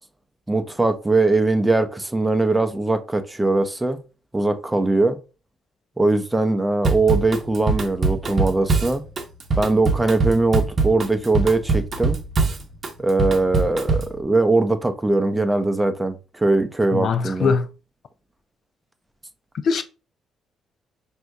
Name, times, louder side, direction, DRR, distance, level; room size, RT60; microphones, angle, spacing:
voice 1, 0.5-4.0 4.3-5.2 6.0-9.0 9.6-12.2 13.0-17.5, right 2 dB, 15° right, 0.6 m, -21 dB
Drum kit / Drum, 6.8-14.2, right 4 dB, 45° right, 0.8 m, -22 dB
voice 2, 16.9-17.7 19.6-19.8, left 5 dB, 60° left, 0.4 m, -21 dB
6.0 x 2.7 x 2.3 m
cardioid pair, 90°, 0 cm